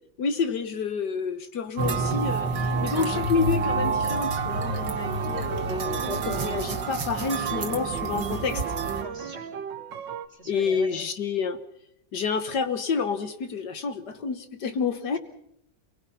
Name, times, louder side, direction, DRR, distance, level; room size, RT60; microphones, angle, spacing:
voice 1, 0.2-8.6 10.5-11.6 12.1-15.2, left 5 dB, 65° left, 9 dB, 1.9 m, -29 dB
sound 1, 1.8-9.0, right 4 dB, 70° right, 2.4 m, -28 dB
sound 2, 2.7-10.3, right 7 dB, 85° right, 1.9 m, -36 dB
voice 2, 8.9-9.5 10.3-11.0, right 2 dB, 35° right, 3 dB, 4.8 m, -42 dB
28.5 x 20.0 x 5.8 m, 0.75 s
omnidirectional pair, 1.9 m